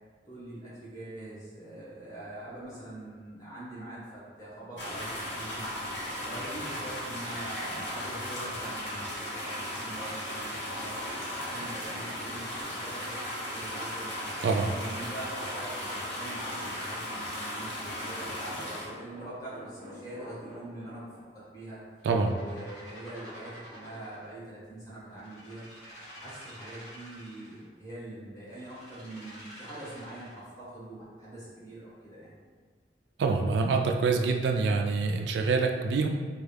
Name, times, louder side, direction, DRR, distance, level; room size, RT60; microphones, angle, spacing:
voice 1, 0.2-5.7 6.2-11.0 11.4-13.2 13.5-14.1 14.7-21.8 22.3-25.7 26.1-32.3, right 1 dB, 20° left, -9 dB, 1.3 m, -43 dB
sound 1, 4.8-18.9, left 1 dB, 80° left, 0.9 m, -36 dB
sound 2, 12.7-13.5 14.4-16.9 17.8-21.2 22.0-24.3 25.1-27.6 28.5-30.4, equal, 45° left, 1.4 m, -49 dB
voice 2, 22.0-22.4 33.2-36.1, right 4 dB, 75° right, 4 dB, 0.3 m, -26 dB
3.5 x 2.3 x 3.3 m, 1.5 s
head